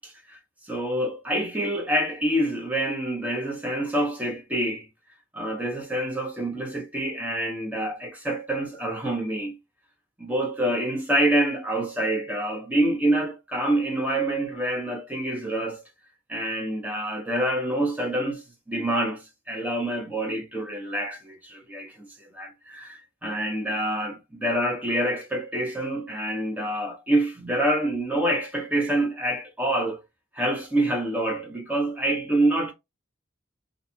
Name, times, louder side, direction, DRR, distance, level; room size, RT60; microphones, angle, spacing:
voice 1, 0.3-4.9 5.3-9.6 10.2-15.8 16.3-22.1 22.3-30.0 30.3-32.7, right 1 dB, 10° right, 0.7 m, -26 dB
2.6 x 2.3 x 2.7 m
head